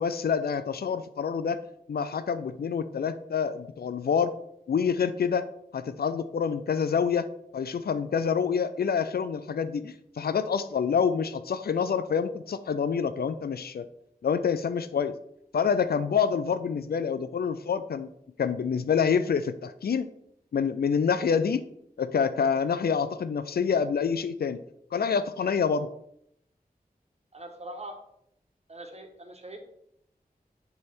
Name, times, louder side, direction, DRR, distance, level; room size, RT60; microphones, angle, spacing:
voice 1, 0.0-1.6 1.9-4.3 4.7-5.5 5.7-7.3 7.5-13.9 14.2-15.1 15.5-18.1 18.4-20.1 20.5-21.6 22.0-24.6 24.9-25.9, left 6 dB, 80° left, 12 dB, 0.4 m, -27 dB
voice 2, 27.3-27.9 28.7-29.6, right 1 dB, 45° right, 3 dB, 1.5 m, -42 dB
9.5 x 3.5 x 4.4 m, 0.73 s
wide cardioid pair, 55°, 16 cm